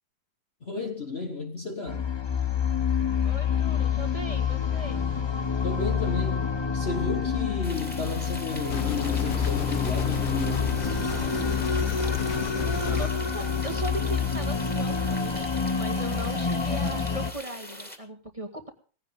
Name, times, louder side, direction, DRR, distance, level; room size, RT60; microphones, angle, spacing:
voice 1, 0.6-2.1 5.6-11.0, left 4 dB, 35° left, 1.5 m, -33 dB
sound 1, 1.9-17.3, left 6 dB, 20° left, 0.8 m, -27 dB
voice 2, 3.2-5.0 12.5-15.5 15.7-18.7, right 2 dB, 20° right, 1.9 m, -38 dB
sound 2, 7.6-18.0, equal, 5° left, 2.6 m, -42 dB
sound 3, 8.7-13.1, left 9 dB, 80° left, 1.8 m, -34 dB
17.5 x 16.0 x 3.8 m
omnidirectional pair, 2.0 m